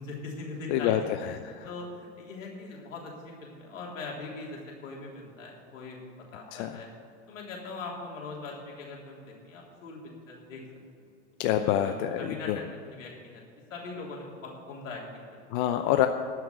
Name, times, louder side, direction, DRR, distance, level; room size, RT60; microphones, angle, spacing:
voice 1, 0.0-1.1 1.6-6.0 6.3-6.9 7.3-10.0 10.3-10.6 11.0-11.1 11.4-13.4 13.7-15.6, left 3 dB, 85° left, -2 dB, 3.4 m, -41 dB
voice 2, 0.7-1.7 6.5-6.8 11.4-12.6 15.5-16.1, left 11 dB, 55° left, 7 dB, 0.8 m, -27 dB
12.5 x 5.9 x 9.5 m, 2.4 s
hypercardioid pair, 105°, 37 cm